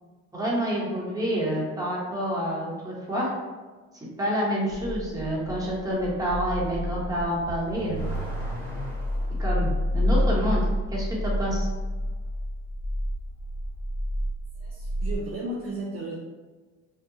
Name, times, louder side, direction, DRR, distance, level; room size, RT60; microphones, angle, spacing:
voice 1, 0.3-3.3 4.2-8.0 9.4-10.6 10.9-11.7, equal, 10° right, -5 dB, 1.0 m, -28 dB
sound 1, 4.7-15.2, left 1 dB, 30° left, 0.4 m, -29 dB
Car / Accelerating revving vroom, 7.2-9.5, right 3 dB, 5° left, 1.3 m, -38 dB
voice 2, 14.5-16.1, right 1 dB, 45° right, -3 dB, 0.5 m, -34 dB
2.7 x 2.2 x 2.7 m, 1.3 s
supercardioid pair, 75°, 33 cm